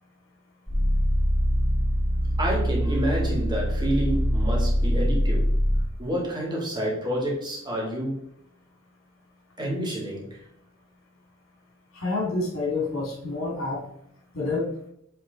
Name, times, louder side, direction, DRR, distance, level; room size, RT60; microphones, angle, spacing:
sound 1, 0.7-5.9, equal, ahead, 1.9 m, -23 dB
voice 1, 2.4-5.5 6.0-8.2 9.6-10.4, right 1 dB, 20° right, -3 dB, 2.0 m, -28 dB
voice 2, 11.9-13.9 14.3-14.7, left 3 dB, 90° left, -2 dB, 2.5 m, -28 dB
8.4 x 3.5 x 3.9 m, 0.74 s
head